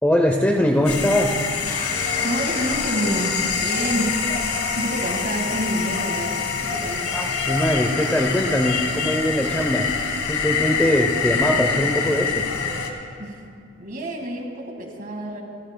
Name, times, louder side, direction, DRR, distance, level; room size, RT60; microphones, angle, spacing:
voice 1, 0.0-1.4 7.1-9.9 10.3-12.5, equal, 5° left, 2 dB, 0.6 m, -21 dB
sound 1, 0.8-12.9, left 5 dB, 75° left, 1.5 m, -25 dB
sound 2, 1.7-5.5, left 3 dB, 40° left, 0.9 m, -36 dB
voice 2, 2.2-7.0 13.2-13.4 13.8-15.4, equal, 40° right, 2 dB, 1.8 m, -28 dB
28.5 x 14.0 x 2.2 m, 2.4 s
head